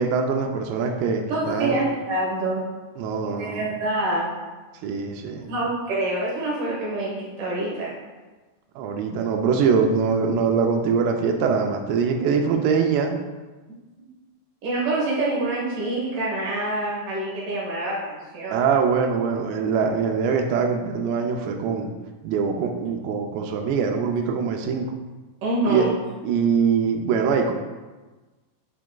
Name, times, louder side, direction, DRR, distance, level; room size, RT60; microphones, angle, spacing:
voice 1, 0.0-1.8 3.0-3.6 4.8-5.5 8.8-13.1 18.5-21.9 22.2-24.9 25.7-25.9 26.2-27.5, right 6 dB, 85° right, 3 dB, 2.6 m, -23 dB
voice 2, 1.3-2.6 3.3-4.2 5.5-7.9 14.6-18.7 25.4-25.9, right 2 dB, 60° right, -6 dB, 2.3 m, -26 dB
9.8 x 4.7 x 2.3 m, 1.3 s
omnidirectional pair, 5.0 m